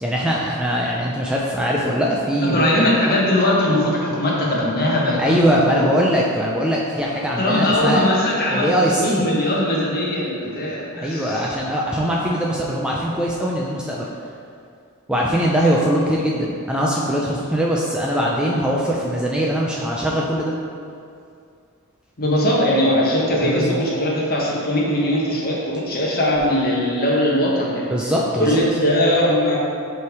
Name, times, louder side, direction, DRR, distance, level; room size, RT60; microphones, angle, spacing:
voice 1, 0.0-2.6 5.2-8.1 8.5-9.2 10.9-14.1 15.1-20.6 23.4-23.8 27.9-28.6, equal, 5° right, -3 dB, 0.4 m, -21 dB
voice 2, 2.4-5.9 7.4-11.5 22.2-27.9 28.4-29.6, left 1 dB, 45° left, -4 dB, 1.2 m, -20 dB
6.9 x 3.4 x 4.7 m, 2.4 s
head